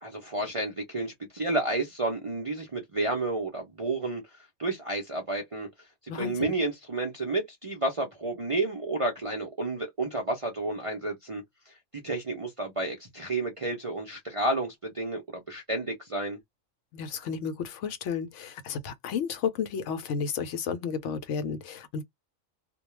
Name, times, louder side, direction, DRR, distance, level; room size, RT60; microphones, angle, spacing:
voice 1, 0.0-4.2 4.6-5.7 6.0-16.4, right 2 dB, 40° right, 0.5 m, -31 dB
voice 2, 6.1-6.6 16.9-22.0, left 6 dB, 70° left, 0.9 m, -32 dB
2.3 x 2.2 x 3.0 m
omnidirectional pair, 1.4 m